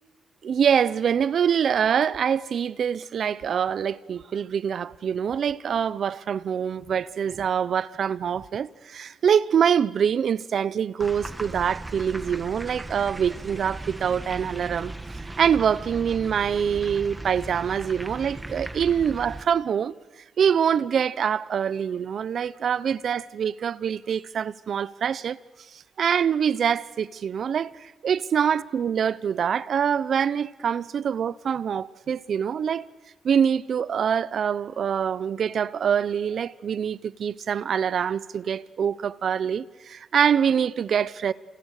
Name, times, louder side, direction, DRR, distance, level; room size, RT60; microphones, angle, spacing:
voice 1, 0.4-14.9 15.4-19.9 20.4-25.4 26.0-32.9 33.2-41.3, right 8 dB, 60° right, 0.8 m, -25 dB
sound 1, 11.0-19.4, right 2 dB, 15° right, 1.6 m, -37 dB
29.5 x 29.5 x 6.6 m
cardioid pair, 130°, 0 cm